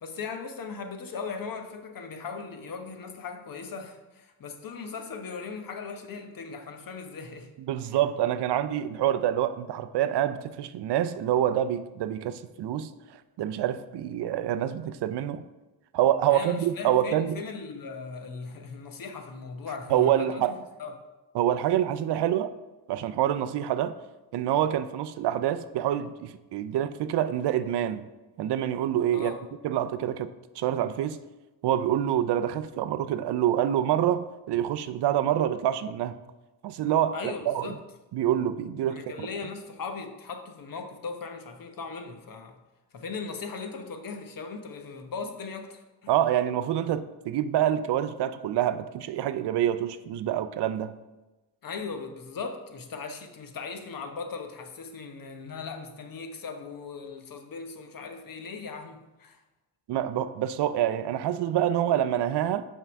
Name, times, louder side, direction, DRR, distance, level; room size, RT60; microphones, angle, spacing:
voice 1, 0.0-7.5 16.3-20.9 29.1-29.4 37.1-37.8 38.9-42.6 42.9-46.1 51.6-59.4, left 5 dB, 50° left, 6 dB, 1.0 m, -38 dB
voice 2, 7.7-12.9 13.4-15.4 15.9-17.4 19.9-20.5 21.3-22.5 22.9-23.9 24.3-28.0 28.4-29.3 29.6-30.3 30.6-31.2 31.6-36.2 36.6-37.7 38.1-39.3 46.1-50.9 59.9-62.7, right 11 dB, 70° right, 12 dB, 0.5 m, -26 dB
5.6 x 3.8 x 6.0 m, 1.1 s
cardioid pair, 90°, 42 cm